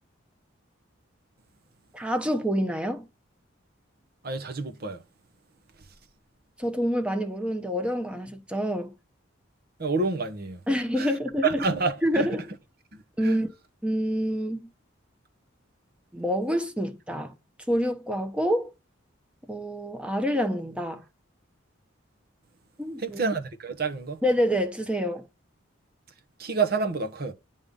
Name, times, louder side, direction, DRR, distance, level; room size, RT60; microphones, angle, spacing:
voice 1, 1.9-3.1 6.6-8.9 10.7-11.6 12.0-12.4 13.2-13.5 13.8-14.7 16.1-17.3 17.7-18.7 19.5-21.0 22.8-23.2 24.2-25.3, equal, 5° right, 0.9 m, -27 dB
voice 2, 4.2-5.0 9.8-10.6 11.0-11.2 11.4-12.4 12.9-13.4 23.0-24.2 26.4-27.3, right 4 dB, 50° right, 1.0 m, -28 dB
8.7 x 3.6 x 5.3 m
head